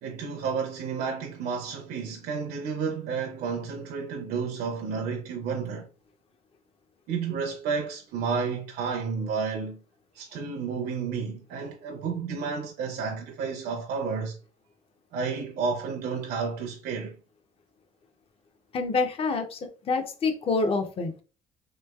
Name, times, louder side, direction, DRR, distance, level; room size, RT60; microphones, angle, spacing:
voice 1, 0.0-5.9 7.1-9.8 10.1-14.4 15.1-17.2, right 5 dB, 65° right, 0.6 m, -31 dB
voice 2, 18.7-21.2, left 4 dB, 35° left, 0.5 m, -27 dB
3.2 x 3.0 x 2.3 m
cardioid pair, 110°, 17 cm